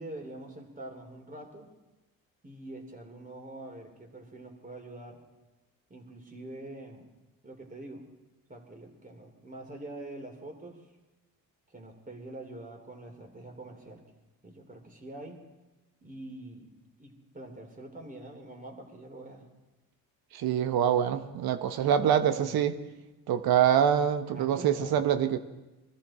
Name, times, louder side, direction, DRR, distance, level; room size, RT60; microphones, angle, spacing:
voice 1, 0.0-1.7 2.4-5.2 5.9-7.1 7.4-8.1 8.5-10.8 11.7-14.0 14.4-15.4 16.0-16.7 17.0-19.5 21.8-22.6 24.3-25.1, right 2 dB, 20° right, 2 dB, 3.3 m, -45 dB
voice 2, 20.3-22.7 23.3-25.4, right 9 dB, 75° right, 10 dB, 1.2 m, -25 dB
22.5 x 13.5 x 4.4 m, 1.1 s
cardioid pair, 85°, 37 cm